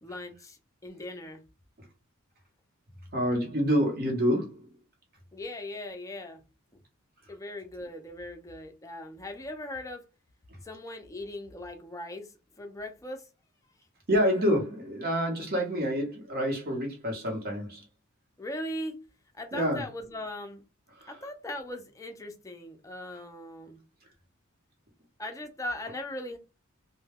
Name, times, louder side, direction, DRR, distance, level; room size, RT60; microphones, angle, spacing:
voice 1, 0.0-1.4 5.3-6.4 7.3-10.0 10.6-13.3 18.4-19.0 19.3-20.6 21.1-23.8 25.2-26.4, left 1 dB, 15° left, 0.5 m, -39 dB
voice 2, 3.1-4.7 14.1-17.8 19.5-19.8 21.0-21.2, equal, 45° right, 1.0 m, -27 dB
2.2 x 2.2 x 3.4 m
head